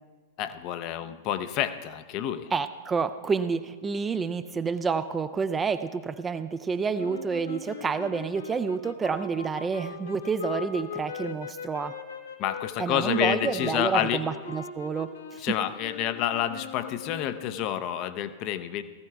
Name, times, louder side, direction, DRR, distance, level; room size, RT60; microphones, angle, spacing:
voice 1, 0.4-2.5 12.4-14.2 15.4-18.8, left 11 dB, 40° left, 11 dB, 0.6 m, -29 dB
voice 2, 2.5-11.9 12.8-15.1, right 5 dB, 15° right, 11 dB, 0.4 m, -29 dB
sound 1, 7.0-17.7, left 6 dB, 70° left, 1.1 m, -40 dB
17.5 x 14.5 x 2.3 m, 1.4 s
figure-of-eight pair, 95°, 0 cm